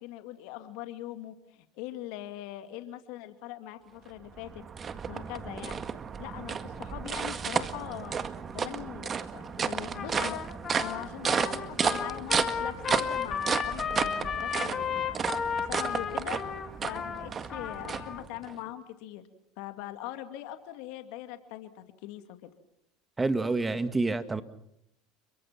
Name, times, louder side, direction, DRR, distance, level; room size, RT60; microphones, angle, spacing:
voice 1, 0.0-4.6 5.1-5.8 6.2-8.2 8.5-10.4 10.8-15.1 15.6-16.4 16.8-19.2 19.6-22.5, left 13 dB, 70° left, 8 dB, 2.3 m, -42 dB
sound 1, 4.1-18.5, right 6 dB, 35° right, 1.8 m, -33 dB
Trumpet, 9.9-18.2, left 7 dB, 35° left, 2.9 m, -34 dB
sound 2, 11.4-18.7, left 7 dB, 85° left, 3.2 m, -53 dB
voice 2, 23.2-24.4, right 3 dB, 15° right, 10 dB, 2.1 m, -28 dB
29.5 x 23.0 x 5.9 m, 0.75 s
hypercardioid pair, 85°, 0 cm